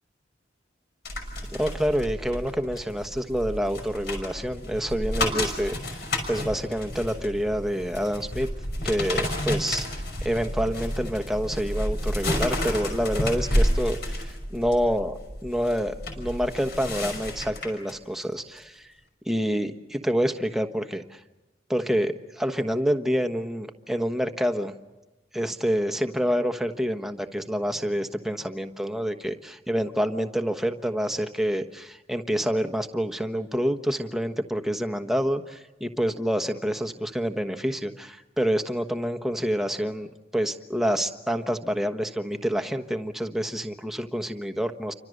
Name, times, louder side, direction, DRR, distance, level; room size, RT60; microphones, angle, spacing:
sound 1, 1.1-17.9 18.4-18.6, left 1 dB, 55° left, 5.8 m, -30 dB
voice 1, 1.5-6.0 6.3-8.5 8.8-9.9 10.2-15.1 15.4-18.9 19.2-21.2 21.7-24.7 25.3-44.9, equal, ahead, 6 dB, 1.2 m, -27 dB
29.5 x 25.0 x 6.6 m, 1.1 s
head